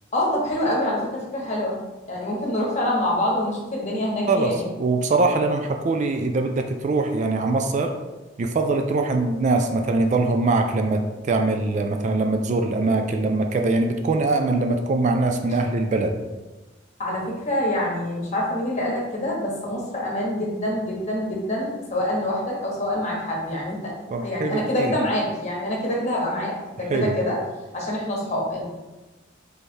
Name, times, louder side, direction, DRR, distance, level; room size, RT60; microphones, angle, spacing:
voice 1, 0.1-1.8 2.1-4.7 17.0-23.9 24.2-27.4 27.7-28.6, left 1 dB, 40° left, -3 dB, 1.1 m, -26 dB
voice 2, 4.3-8.0 8.4-16.2 24.1-25.0 26.9-27.1, right 3 dB, 40° right, 5 dB, 0.3 m, -22 dB
3.3 x 3.2 x 4.3 m, 1.1 s
head